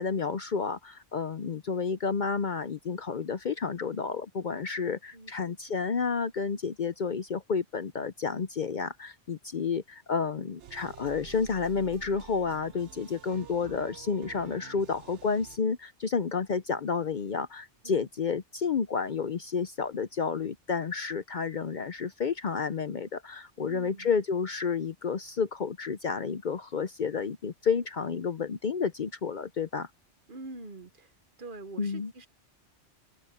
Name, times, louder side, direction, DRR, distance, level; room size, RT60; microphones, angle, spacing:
voice 1, 0.0-29.9 31.8-32.1, left 5 dB, 50° left, 0.7 m, -30 dB
voice 2, 5.1-5.5 17.8-18.1 23.6-24.1 30.3-31.1 31.4-32.3, right 2 dB, 50° right, 1.2 m, -45 dB
sound 1, 10.6-15.6, right 9 dB, 75° right, 1.1 m, -49 dB
open air
omnidirectional pair, 1.2 m